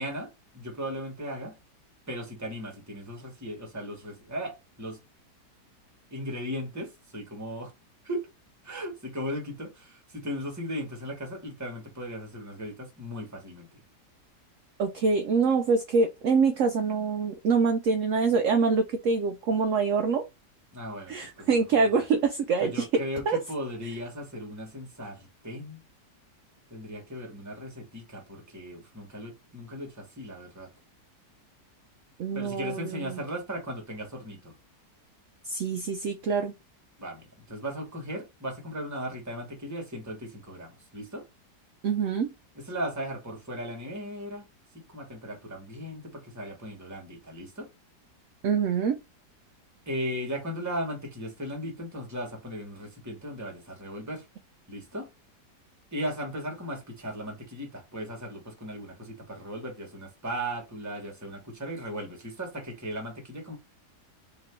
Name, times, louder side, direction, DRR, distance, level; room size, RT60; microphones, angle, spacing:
voice 1, 0.0-1.6 2.1-5.0 6.1-7.7 8.0-8.3 8.6-13.7 20.7-21.5 22.0-22.1 22.6-25.8 26.7-30.7 32.3-34.5 37.0-41.2 42.6-44.5 44.9-47.7 49.9-54.2 54.7-55.1 55.9-63.6, equal, 10° right, 1.1 m, -37 dB
voice 2, 14.8-20.2 21.1-22.9 23.3-23.4 32.2-33.2 35.4-36.5 41.8-42.3 48.4-49.0, right 5 dB, 70° right, 0.7 m, -25 dB
3.3 x 2.9 x 4.4 m
omnidirectional pair, 1.8 m